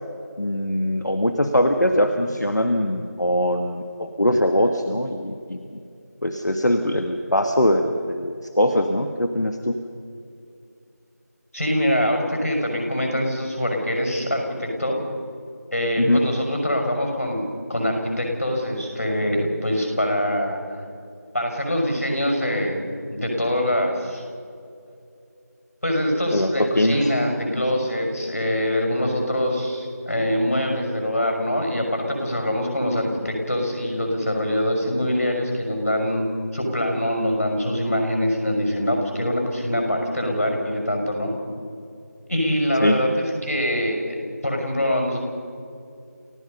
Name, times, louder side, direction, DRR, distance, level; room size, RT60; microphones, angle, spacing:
voice 1, 0.4-5.8 6.2-9.8 16.0-16.2 26.3-27.1 27.5-27.6 42.8-43.0, left 1 dB, 80° left, 6 dB, 1.6 m, -22 dB
voice 2, 11.5-15.0 15.7-17.4 17.7-20.8 21.3-22.8 23.1-24.2 25.8-36.3 36.5-41.3 42.3-44.0 44.4-45.2, left 1 dB, 55° left, 2 dB, 6.3 m, -24 dB
30.0 x 16.0 x 5.5 m, 2.5 s
figure-of-eight pair, 180°, 9 cm